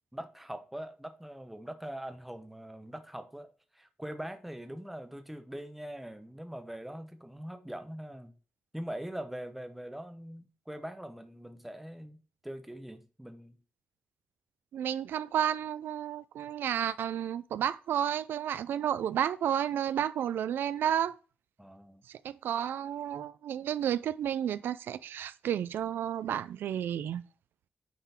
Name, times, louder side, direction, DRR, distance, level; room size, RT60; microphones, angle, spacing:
voice 1, 0.1-8.4 8.7-13.6 21.6-22.0, right 1 dB, 5° right, 0.9 m, -42 dB
voice 2, 14.7-21.1 22.1-27.2, right 10 dB, 85° right, 0.4 m, -31 dB
9.3 x 3.8 x 4.3 m
cardioid pair, 120°, 4 cm